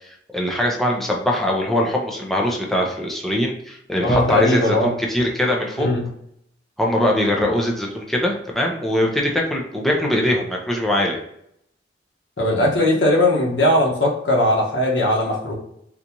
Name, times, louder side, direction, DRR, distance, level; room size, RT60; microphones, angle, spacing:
voice 1, 0.3-5.9 6.8-11.2, left 1 dB, ahead, -2 dB, 0.6 m, -21 dB
voice 2, 4.0-4.9 5.8-6.1 12.4-15.5, left 1 dB, 70° left, -2 dB, 1.1 m, -19 dB
3.9 x 2.4 x 2.9 m, 0.73 s
head